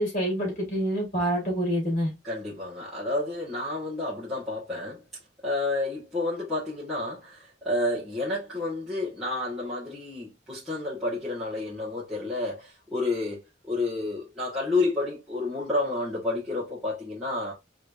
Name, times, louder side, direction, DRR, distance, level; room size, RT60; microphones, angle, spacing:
voice 1, 0.0-2.1, equal, 45° left, 2.3 m, -26 dB
voice 2, 2.2-5.0 5.4-17.5, left 2 dB, ahead, 1.6 m, -30 dB
4.1 x 3.3 x 2.6 m
head